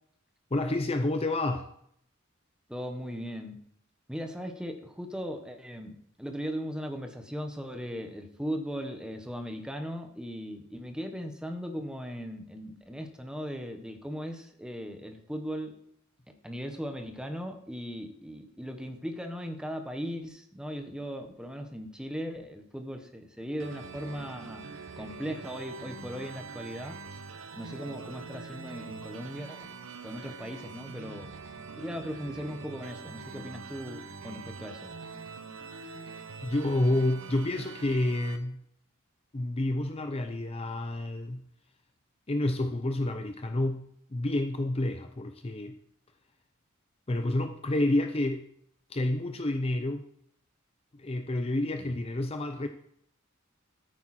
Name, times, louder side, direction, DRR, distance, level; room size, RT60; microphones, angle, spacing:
voice 1, 0.5-1.7 36.4-38.6 39.3-41.5 42.3-45.8 47.1-48.4 48.9-50.0 50.9-52.7, left 1 dB, 30° left, 7 dB, 0.7 m, -29 dB
voice 2, 2.7-3.6 4.1-15.8 16.4-24.7 25.0-27.0 27.6-29.7 30.0-31.3 31.8-35.0 51.8-52.0, equal, 5° right, 5 dB, 1.2 m, -38 dB
sound 1, 23.6-38.4, right 4 dB, 80° right, 1.0 m, -44 dB
13.5 x 9.0 x 4.3 m, 0.69 s
head